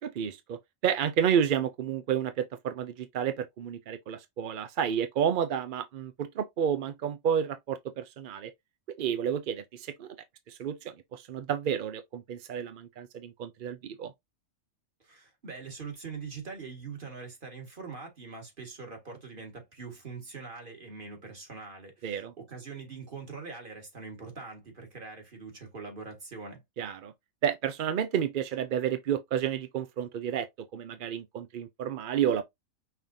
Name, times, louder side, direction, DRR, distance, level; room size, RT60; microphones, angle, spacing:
voice 1, 0.0-8.5 9.0-10.2 10.5-14.1 22.0-22.3 26.8-27.1 27.4-32.4, right 8 dB, 65° right, 0.5 m, -31 dB
voice 2, 15.0-26.6, right 4 dB, 40° right, 1.8 m, -43 dB
5.7 x 3.5 x 2.6 m
omnidirectional pair, 1.5 m